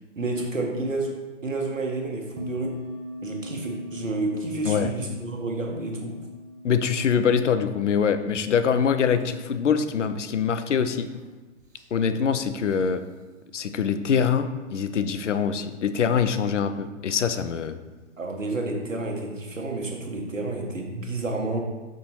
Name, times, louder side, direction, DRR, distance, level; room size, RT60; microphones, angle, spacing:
voice 1, 0.1-2.8 3.2-6.2 18.2-21.6, right 2 dB, 90° right, 2 dB, 1.3 m, -30 dB
sound 1, 2.4-9.6 9.9-10.0 10.8-11.2 11.6-11.8 12.7-12.8, equal, 15° right, 0.4 m, -40 dB
voice 2, 6.6-11.1 11.9-13.0 13.5-17.8, left 7 dB, 70° left, 10 dB, 0.7 m, -24 dB
6.1 x 4.1 x 4.4 m, 1.2 s
figure-of-eight pair, 120°, 37 cm